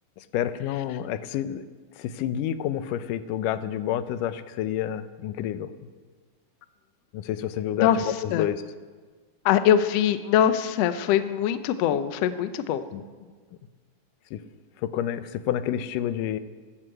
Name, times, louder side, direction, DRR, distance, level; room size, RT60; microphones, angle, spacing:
voice 1, 0.2-1.7 2.0-5.7 7.1-8.6 12.9-13.0 14.3-14.4 14.8-16.4, left 11 dB, 90° left, 13 dB, 2.3 m, -29 dB
voice 2, 9.4-12.8, left 10 dB, 75° left, 11 dB, 1.6 m, -22 dB
13.5 x 12.5 x 7.8 m, 1.5 s
omnidirectional pair, 3.7 m